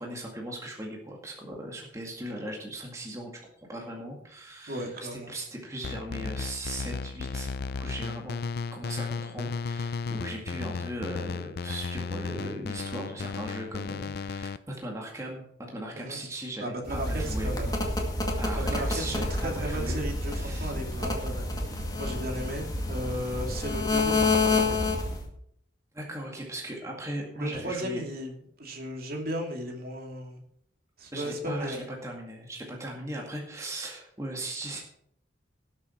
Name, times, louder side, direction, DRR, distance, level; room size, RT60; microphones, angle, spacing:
voice 1, 0.0-3.3 3.6-8.4 8.7-17.5 18.4-20.7 25.9-28.0 31.1-34.8, right 1 dB, 15° right, -1 dB, 2.1 m, -38 dB
voice 2, 4.6-5.3 15.9-16.2 16.6-17.8 18.5-25.1 27.3-30.4 31.0-31.8, equal, 55° right, 1 dB, 2.8 m, -36 dB
sound 1, 5.8-14.6, left 4 dB, 55° left, 0.5 m, -34 dB
sound 2, 16.9-25.3, left 3 dB, 20° left, 2.0 m, -28 dB
18.0 x 7.3 x 4.5 m, 0.70 s
head